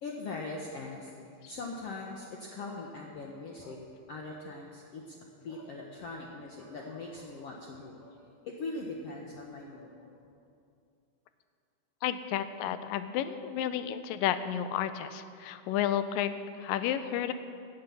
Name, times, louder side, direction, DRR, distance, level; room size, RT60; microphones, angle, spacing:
voice 1, 0.0-3.8 4.1-8.2 8.4-10.2, left 3 dB, 65° left, 0 dB, 1.5 m, -41 dB
voice 2, 12.0-16.3 16.6-17.3, left 10 dB, 85° left, 11 dB, 2.2 m, -31 dB
16.5 x 7.8 x 6.9 m, 2.4 s
omnidirectional pair, 3.9 m